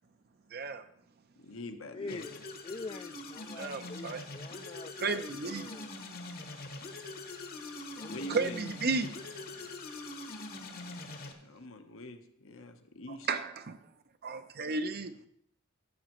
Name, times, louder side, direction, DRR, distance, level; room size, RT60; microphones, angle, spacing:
voice 1, 0.5-0.8 3.6-4.2 5.0-5.7 8.3-9.1 13.3-13.8 14.2-15.1, right 4 dB, 45° right, 10 dB, 0.6 m, -33 dB
voice 2, 1.4-2.2 8.1-8.6 11.4-13.3, left 1 dB, 65° left, 6 dB, 0.9 m, -44 dB
voice 3, 1.9-5.9 8.0-8.8, left 3 dB, 25° left, 7 dB, 0.3 m, -45 dB
sound 1, 2.1-11.3, left 2 dB, 45° left, 1.1 m, -43 dB
14.0 x 7.5 x 3.0 m, 0.69 s
head